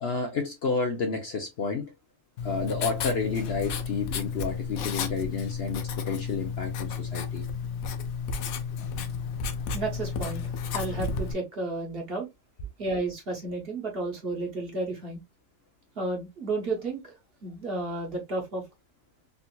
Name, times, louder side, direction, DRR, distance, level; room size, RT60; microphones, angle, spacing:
voice 1, 0.0-1.9 2.4-7.4, left 4 dB, 55° left, 0.8 m, -30 dB
Writing, 2.4-11.3, left 5 dB, 75° left, 1.0 m, -32 dB
voice 2, 9.7-10.4 10.7-12.3 12.8-15.2 16.0-17.1 17.4-18.6, right 2 dB, 45° right, 1.3 m, -32 dB
3.7 x 2.7 x 2.2 m
omnidirectional pair, 1.5 m